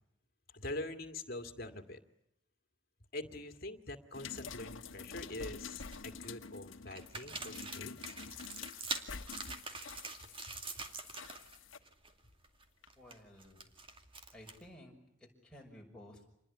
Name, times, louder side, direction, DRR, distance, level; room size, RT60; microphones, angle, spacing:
voice 1, 0.5-2.0 3.1-8.1, left 2 dB, 50° left, 8 dB, 2.3 m, -44 dB
sound 1, 4.1-11.8 12.8-12.9, left 5 dB, 90° left, 1.3 m, -48 dB
sound 2, 4.8-5.2 5.6-6.3 6.9-11.6 11.8-12.1 12.4-14.7, right 3 dB, 25° right, 2.4 m, -45 dB
voice 2, 13.0-13.7 14.3-16.4, left 1 dB, 5° left, -1 dB, 6.1 m, -55 dB
27.5 x 21.0 x 9.9 m, 0.78 s
head